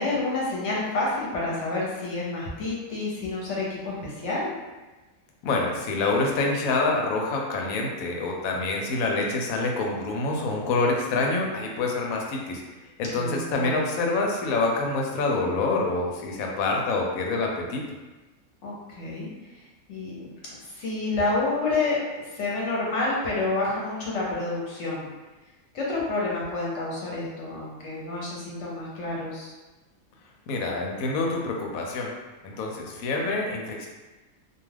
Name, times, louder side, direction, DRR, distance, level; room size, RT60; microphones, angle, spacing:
voice 1, 0.0-4.5 8.0-8.2 13.1-13.7 18.6-19.3 19.9-25.1 25.7-29.5 33.3-33.5, left 2 dB, 60° left, -5 dB, 0.9 m, -29 dB
voice 2, 5.4-12.6 13.0-17.9 30.5-32.1 32.4-33.9, left 3 dB, 85° left, 0 dB, 1.0 m, -26 dB
2.4 x 2.3 x 3.2 m, 1.2 s
omnidirectional pair, 1.5 m